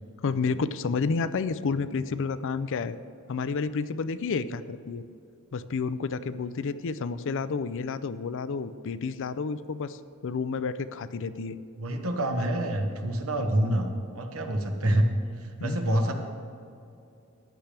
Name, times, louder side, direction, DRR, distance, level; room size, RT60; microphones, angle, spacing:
voice 1, 0.2-3.0 3.3-5.0 5.5-11.6 15.6-15.8, left 4 dB, 60° left, 13 dB, 0.4 m, -30 dB
voice 2, 11.8-13.9 14.1-15.1 15.6-16.1, right 1 dB, 70° right, 4 dB, 1.2 m, -26 dB
15.0 x 10.0 x 3.4 m, 2.6 s
head